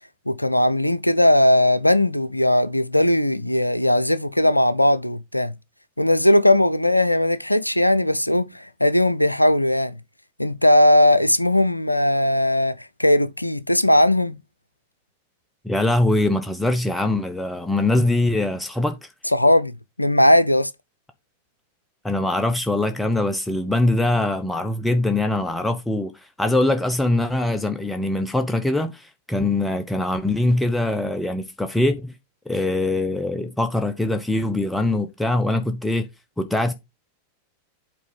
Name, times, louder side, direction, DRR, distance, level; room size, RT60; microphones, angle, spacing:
voice 1, 0.3-5.5 6.0-10.0 10.4-14.4 19.3-19.7 20.0-20.7, left 1 dB, 85° left, 0.5 m, -18 dB
voice 2, 15.6-19.0 22.0-32.1 32.5-36.1 36.4-36.7, left 2 dB, 5° left, 0.9 m, -22 dB
8.5 x 4.7 x 5.2 m
figure-of-eight pair, 90°, 0 cm